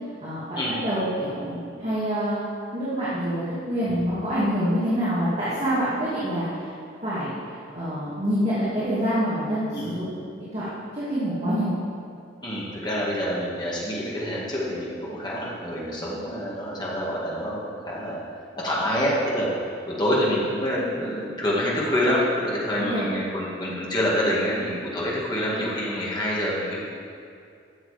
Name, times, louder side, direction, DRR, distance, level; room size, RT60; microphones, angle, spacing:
voice 1, 0.2-2.4 2.7-6.7 7.0-7.3 7.7-10.0 10.4-10.7 10.9-11.7 22.8-23.1, equal, 35° right, -11 dB, 2.4 m, -26 dB
voice 2, 12.4-18.2 18.6-19.5 19.8-26.8, equal, 20° left, -6 dB, 2.2 m, -26 dB
13.0 x 7.1 x 5.2 m, 2.4 s
head